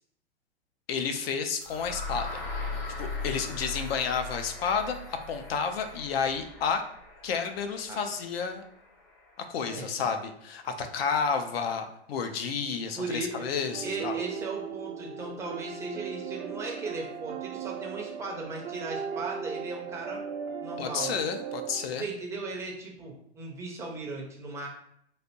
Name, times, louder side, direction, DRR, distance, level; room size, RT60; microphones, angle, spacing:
voice 1, 0.9-2.4 3.0-6.8 7.2-8.6 9.5-14.1 20.8-22.0, left 6 dB, 60° left, 7 dB, 0.6 m, -31 dB
sound 1, 1.6-9.5, left 3 dB, 35° left, 0.9 m, -39 dB
voice 2, 9.6-10.1 13.0-13.5 13.8-20.2 20.6-21.1 22.0-24.7, right 3 dB, 10° right, -1 dB, 0.5 m, -37 dB
sound 2, 13.7-21.9, right 7 dB, 70° right, 0.7 m, -37 dB
3.3 x 2.5 x 2.8 m, 0.71 s
hypercardioid pair, 130°, 35 cm